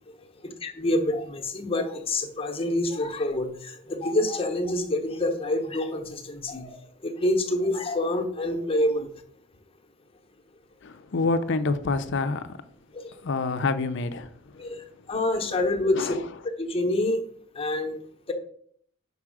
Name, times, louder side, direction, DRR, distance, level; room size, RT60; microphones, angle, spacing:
voice 1, 0.6-6.8 7.0-9.1 12.9-13.1 14.6-14.8 15.1-16.2 16.6-17.2 17.6-18.0, left 1 dB, 30° left, 0.9 m, -27 dB
voice 2, 10.8-12.6 13.2-14.6 15.9-16.2, left 3 dB, 60° left, 0.6 m, -27 dB
5.5 x 4.8 x 6.1 m
head